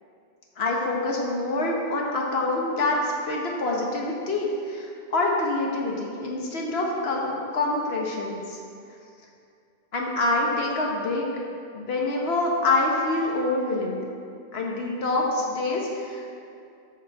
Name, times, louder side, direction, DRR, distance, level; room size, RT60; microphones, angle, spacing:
voice 1, 0.6-8.6 9.9-11.2 11.7-14.0 14.5-16.3, left 2 dB, 80° left, -1 dB, 1.4 m, -26 dB
13.0 x 5.5 x 4.8 m, 2.4 s
omnidirectional pair, 1.0 m